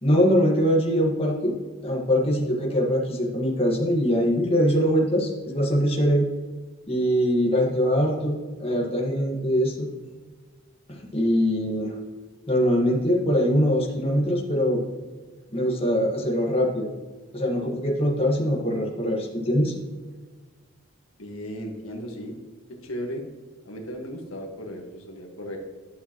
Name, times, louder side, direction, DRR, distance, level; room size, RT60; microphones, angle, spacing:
voice 1, 0.0-1.6 1.8-6.3 6.9-9.9 10.9-12.0 12.5-14.8 15.5-16.9 17.3-19.7, equal, 30° left, -2 dB, 1.5 m, -23 dB
voice 2, 21.2-22.3 22.8-23.2 23.6-25.6, equal, 85° left, 1 dB, 1.5 m, -35 dB
11.0 x 6.9 x 3.0 m, 1.4 s
head